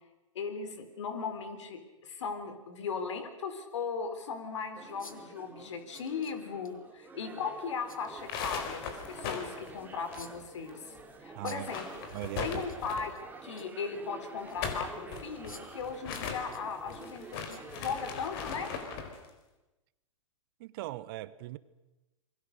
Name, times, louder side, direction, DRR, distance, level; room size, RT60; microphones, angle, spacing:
voice 1, 0.3-10.9 11.2-11.9 12.4-13.2 13.4-18.7, left 5 dB, 60° left, 4.0 m, -37 dB
sound 1, 1.1-1.2 3.0-3.1 3.7-3.8 5.0-5.4 5.9-6.7 7.9-8.1 10.1-10.6 11.4-12.2 12.5-12.8 13.1-13.8 14.5-14.6 15.4-15.9 16.1-17.0 17.5-17.6 18.0-18.1, left 3 dB, 85° left, 2.3 m, -51 dB
sound 2, 4.7-19.0, right 4 dB, 10° right, 2.6 m, -49 dB
sound 3, 8.1-10.7 11.0-11.1 11.4-13.2 14.3-19.2, left 6 dB, 45° left, 4.2 m, -39 dB
voice 2, 11.3-11.7 12.1-12.6 20.6-21.6, right 17 dB, 40° right, 1.0 m, -39 dB
28.0 x 23.0 x 6.6 m
figure-of-eight pair, 115°, 17 cm